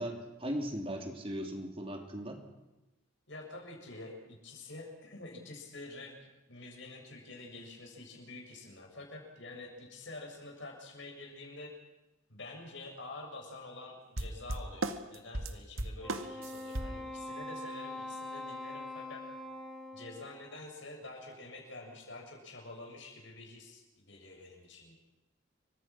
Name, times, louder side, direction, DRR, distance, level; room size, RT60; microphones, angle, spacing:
voice 1, 0.0-2.4, equal, 30° right, 3 dB, 3.6 m, -38 dB
voice 2, 3.3-6.1 6.5-11.7 12.3-19.2 19.9-25.0, left 2 dB, 65° left, 1 dB, 7.5 m, -47 dB
sound 1, 14.2-17.0, right 2 dB, 90° right, 1.9 m, -36 dB
Wind instrument woodwind instrument, 16.0-20.6, left 1 dB, ahead, 4.2 m, -43 dB
29.0 x 25.0 x 6.2 m, 1.0 s
head